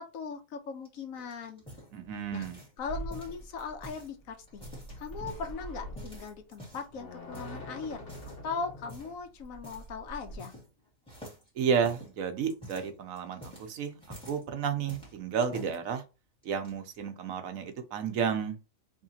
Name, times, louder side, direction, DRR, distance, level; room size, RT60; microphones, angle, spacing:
voice 1, 0.0-1.6 2.3-2.5 2.8-4.6 5.0-8.0 8.4-10.5, left 5 dB, 90° left, 1.2 m, -39 dB
sound 1, 0.9-2.8 3.1-4.1 4.5-5.5 6.0-6.9 7.3-7.6 8.0-8.4 8.9-9.2 9.6-9.9 10.1-10.8 11.1-14.4 14.9-15.8 16.4-17.0, equal, 5° left, 1.9 m, -48 dB
voice 2, 1.9-2.6 11.5-16.0 16.4-18.6, right 7 dB, 85° right, 1.2 m, -32 dB
sound 2, 2.8-10.4, right 1 dB, 60° left, 1.6 m, -44 dB
3.6 x 3.2 x 2.8 m
omnidirectional pair, 1.4 m